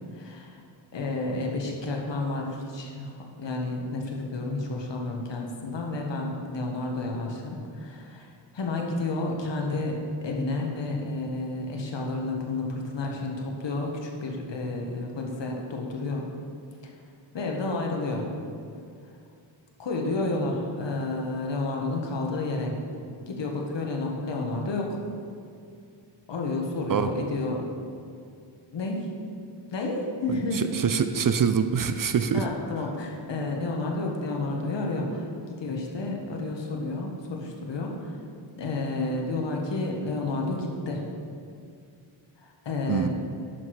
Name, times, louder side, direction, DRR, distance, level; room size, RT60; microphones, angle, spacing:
voice 1, 0.1-0.6 0.9-16.3 16.8-16.9 17.3-18.3 19.8-22.8 23.3-25.0 26.3-27.7 28.7-29.1 29.7-30.7 32.3-38.2 38.6-41.0 42.4-43.1, left 2 dB, 60° left, 0 dB, 1.5 m, -31 dB
voice 2, 30.5-32.5 42.9-43.1, right 7 dB, 45° right, 9 dB, 0.5 m, -24 dB
11.0 x 6.2 x 4.8 m, 2.4 s
wide cardioid pair, 115°, 48 cm